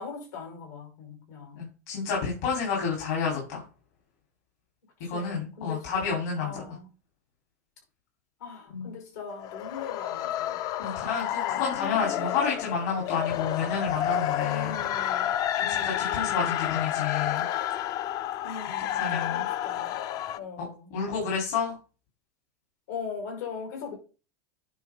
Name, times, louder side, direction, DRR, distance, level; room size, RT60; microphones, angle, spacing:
voice 1, 0.0-1.6 5.0-6.9 8.4-11.1 11.4-11.7 14.4-16.1 18.4-19.4 19.6-20.0 20.4-20.9 22.9-23.9, left 5 dB, 90° left, 5.3 m, -41 dB
voice 2, 1.6-3.6 5.0-6.6 8.7-8.9 10.8-14.7 15.8-17.4 18.9-19.4 20.6-21.7, left 5 dB, 70° left, 4.1 m, -30 dB
sound 1, 9.3-20.4, left 11 dB, 45° left, 0.5 m, -30 dB
10.0 x 4.9 x 3.9 m
supercardioid pair, 125°, 9 cm